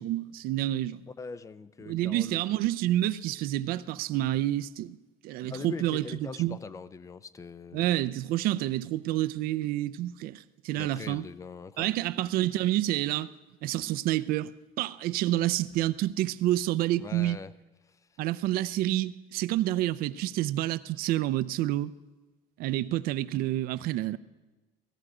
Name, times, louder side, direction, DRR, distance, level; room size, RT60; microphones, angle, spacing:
voice 1, 0.0-1.0 1.9-5.0 5.2-6.6 7.7-11.3 11.8-13.3 13.6-17.4 18.2-21.9 22.6-24.2, right 14 dB, 65° right, 0.5 m, -28 dB
voice 2, 1.2-2.6 5.4-7.9 10.7-11.9 17.0-17.5 17.9-18.0, left 4 dB, 20° left, 0.5 m, -42 dB
17.5 x 15.0 x 4.9 m
cardioid pair, 130°, 16 cm